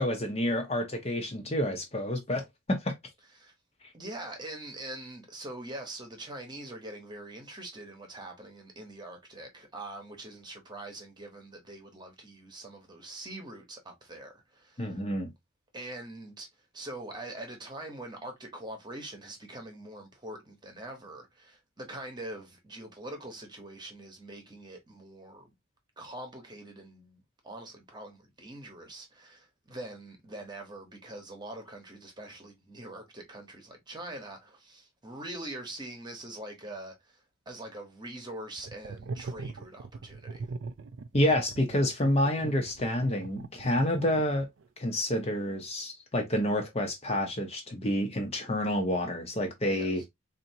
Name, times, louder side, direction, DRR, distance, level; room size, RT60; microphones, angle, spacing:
voice 1, 0.0-2.9 14.8-15.3 41.1-44.5 44.8-50.0, left 1 dB, 30° left, 0.7 m, -28 dB
voice 2, 3.9-15.0 15.7-16.5 16.7-25.5 26.0-40.5 49.7-50.1, right 1 dB, 20° right, 1.0 m, -43 dB
sound 1, 38.6-44.7, right 3 dB, 65° right, 0.4 m, -41 dB
4.2 x 2.7 x 2.7 m
head